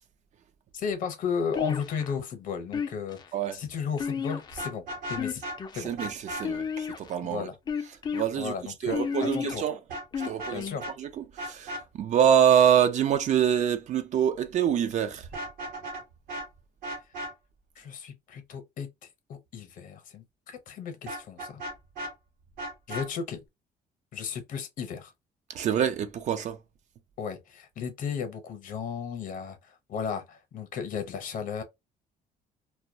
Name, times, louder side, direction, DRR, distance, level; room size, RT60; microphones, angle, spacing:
voice 1, 0.7-3.2 3.5-5.4 5.7-5.9 7.2-7.6 8.4-9.6 10.5-10.8 17.8-18.9 19.3-21.6 22.9-23.4 24.1-25.1 27.2-31.6, left 6 dB, 60° left, 0.7 m, -34 dB
sound 1, 1.5-2.2 2.7-3.3 4.0-4.7 5.1-5.8 6.4-7.1 7.7-8.2 8.9-9.6 10.1-10.8, left 6 dB, 30° left, 0.4 m, -32 dB
Vehicle horn car horn honking, 4.5-5.6 6.0-6.4 9.9-10.5 10.8-10.9 11.4-11.8 15.2-16.0 16.3-16.5 16.8-17.3 21.1-22.1 22.6-23.1, equal, 65° right, 1.0 m, -36 dB
voice 2, 5.8-7.5 8.1-8.5 8.8-9.8 10.2-10.7 11.0-15.3 25.5-26.6, right 9 dB, 50° right, 0.4 m, -25 dB
2.2 x 2.1 x 2.6 m
cardioid pair, 125°, 16 cm